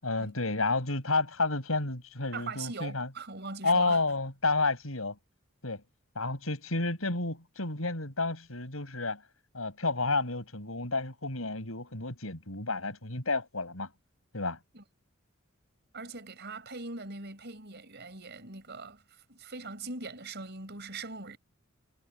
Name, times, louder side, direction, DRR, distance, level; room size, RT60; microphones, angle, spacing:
voice 1, 0.0-3.1 3.6-5.2 5.6-5.8 6.1-9.2 9.5-13.9 14.3-14.6, left 3 dB, 90° left, 6.1 m, -30 dB
voice 2, 2.3-4.0 14.7-14.8 15.9-21.4, right 3 dB, 55° right, 5.3 m, -41 dB
head